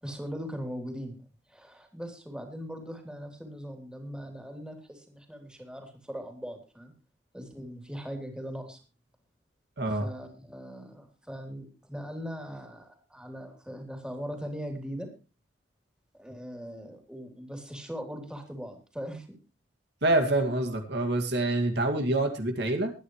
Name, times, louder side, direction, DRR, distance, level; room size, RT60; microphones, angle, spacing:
voice 1, 0.0-1.2 1.5-6.9 7.3-8.8 10.0-15.1 16.1-19.3, equal, 5° right, 4 dB, 3.4 m, -40 dB
voice 2, 9.8-10.1 20.0-22.9, right 2 dB, 65° right, 4 dB, 2.3 m, -26 dB
22.0 x 10.0 x 3.2 m, 0.33 s
head